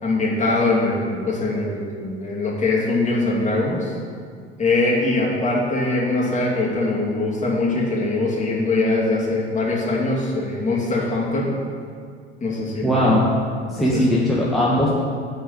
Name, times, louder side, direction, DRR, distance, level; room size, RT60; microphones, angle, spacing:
voice 1, 0.0-4.0 4.6-11.5 12.4-13.2 13.8-14.0, left 2 dB, 20° left, -4 dB, 2.6 m, -22 dB
voice 2, 12.8-13.4 13.7-14.9, left 1 dB, ahead, -6 dB, 1.3 m, -19 dB
9.7 x 4.6 x 7.7 m, 2.1 s
figure-of-eight pair, 70°, 32 cm